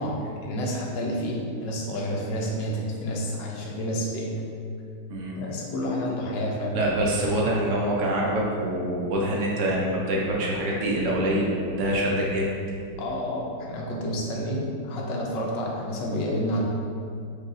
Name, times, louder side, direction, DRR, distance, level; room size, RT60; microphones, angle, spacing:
voice 1, 0.0-4.4 5.4-7.2 13.0-16.6, equal, 85° left, -2 dB, 1.4 m, -29 dB
voice 2, 6.7-12.5, right 1 dB, 75° right, -3 dB, 0.7 m, -25 dB
4.7 x 2.7 x 3.7 m, 2.4 s
omnidirectional pair, 1.9 m